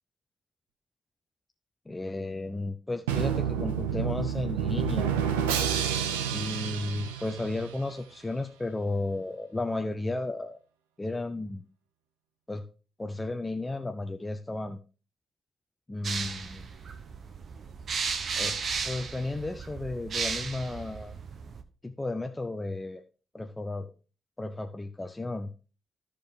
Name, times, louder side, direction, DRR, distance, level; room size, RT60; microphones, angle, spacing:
voice 1, 1.9-5.2 6.3-10.6 11.0-11.6 12.5-12.6 13.0-14.8 15.9-16.7 18.4-18.5 18.8-21.2 21.8-23.0 23.3-23.9 24.4-25.5, left 2 dB, 20° left, 4 dB, 0.9 m, -33 dB
Drum, 3.1-7.9, right 8 dB, 85° right, 0.6 m, -29 dB
sound 1, 16.0-21.6, right 5 dB, 55° right, 1.0 m, -35 dB
13.0 x 5.1 x 3.6 m, 0.35 s
hypercardioid pair, 40°, 0 cm